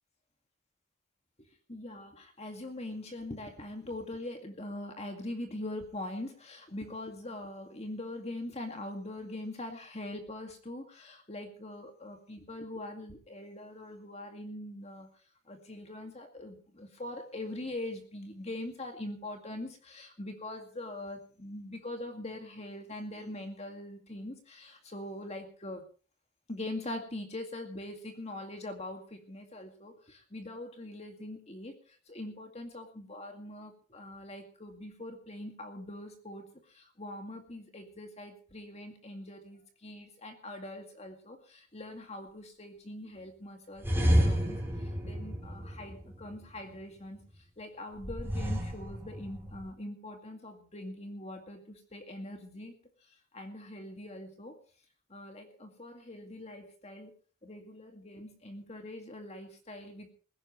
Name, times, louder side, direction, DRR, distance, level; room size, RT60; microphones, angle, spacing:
voice 1, 1.7-15.1 15.5-25.8 26.5-31.7 32.1-47.2 47.6-52.7 53.3-54.6 55.1-57.1 57.4-60.1, left 1 dB, 30° left, 4 dB, 2.2 m, -42 dB
sound 1, 43.8-46.5 48.0-49.7, equal, 10° right, 4.1 m, -30 dB
20.5 x 16.5 x 3.2 m, 0.39 s
head